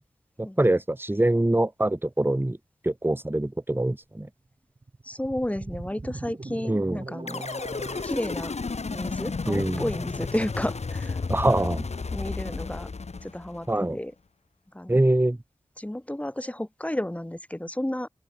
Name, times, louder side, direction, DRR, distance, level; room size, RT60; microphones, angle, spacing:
voice 1, 0.4-2.6 2.8-4.3 6.7-7.0 9.5-9.8 11.3-11.8 13.7-14.0 14.9-15.4, right 1 dB, 20° right, 1.5 m, -24 dB
sound 1, 4.8-8.0, right 2 dB, 45° right, 7.9 m, -39 dB
voice 2, 5.0-7.4 8.0-8.5 8.9-11.8 12.1-12.9 13.2-14.1 14.7-15.0 15.8-18.1, left 1 dB, 10° left, 1.4 m, -32 dB
sound 2, 7.3-13.7, left 4 dB, 70° left, 5.0 m, -32 dB
open air
cardioid pair, 40°, 11 cm